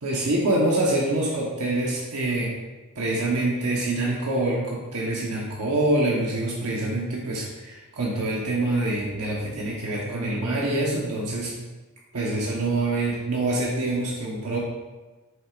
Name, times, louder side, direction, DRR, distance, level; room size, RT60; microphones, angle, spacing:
voice 1, 0.0-2.5 2.9-11.7 12.1-14.6, right 2 dB, 85° right, -4 dB, 1.1 m, -25 dB
8.1 x 6.2 x 2.5 m, 1.2 s
head